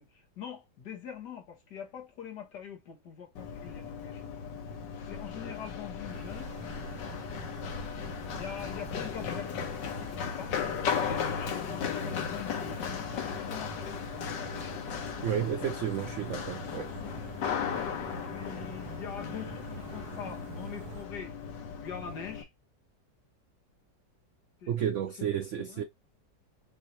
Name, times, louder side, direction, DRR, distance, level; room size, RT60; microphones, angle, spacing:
voice 1, 0.0-4.3 5.0-6.5 8.4-9.7 10.0-10.5 11.0-14.8 16.9-17.2 17.7-21.4 21.8-22.5 24.6-24.7 25.2-25.3 25.7-25.8, left 7 dB, 70° left, 2.0 m, -44 dB
Run, 3.4-22.4, left 7 dB, 90° left, 1.7 m, -36 dB
sound 1, 6.1-21.0, right 4 dB, 65° right, 1.3 m, -46 dB
voice 2, 15.2-16.9 24.7-25.8, right 9 dB, 85° right, 0.6 m, -32 dB
6.4 x 2.7 x 2.9 m
omnidirectional pair, 1.9 m